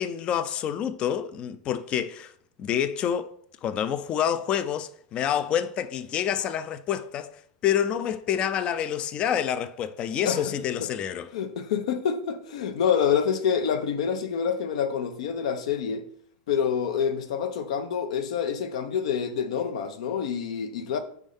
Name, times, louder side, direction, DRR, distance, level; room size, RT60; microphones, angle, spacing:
voice 1, 0.0-2.3 2.6-3.3 3.6-11.3, left 9 dB, 30° left, 0.4 m, -28 dB
voice 2, 11.3-16.0 16.5-21.0, left 7 dB, 85° left, 0.9 m, -27 dB
5.3 x 3.6 x 5.3 m
supercardioid pair, 155°, 3 cm